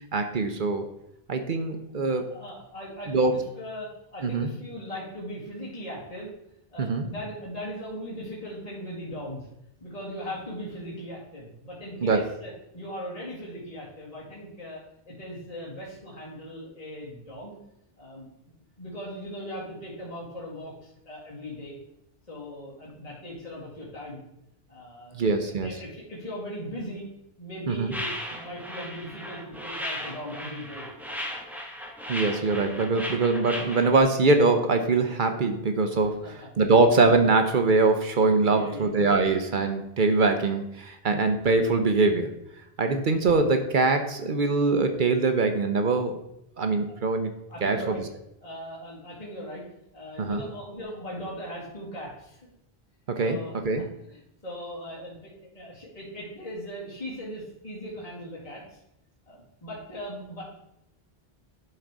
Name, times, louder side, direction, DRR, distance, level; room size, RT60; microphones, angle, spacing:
voice 1, 0.1-0.8 1.3-2.3 3.1-3.3 4.2-4.5 6.8-7.0 12.0-12.2 25.1-25.7 27.7-27.9 32.1-42.3 42.8-46.1 46.6-47.3 47.6-48.0 50.2-50.4 53.1-53.4 53.6-53.8, right 3 dB, 55° right, 6 dB, 0.8 m, -23 dB
voice 2, 2.3-3.3 3.6-6.3 6.7-9.5 9.8-14.8 15.1-17.5 18.0-18.3 18.8-21.7 22.3-24.2 24.7-25.2 25.6-27.0 27.4-28.1 28.4-30.9 36.2-36.5 38.4-38.9 41.0-41.2 42.8-42.9 47.5-48.0 48.4-49.6 49.9-52.5 53.2-55.1 55.5-58.8 59.3-60.4, equal, 40° left, -6 dB, 2.1 m, -39 dB
sound 1, 27.9-34.0, equal, ahead, 1.0 m, -36 dB
11.0 x 3.8 x 4.6 m, 0.80 s
omnidirectional pair, 1.0 m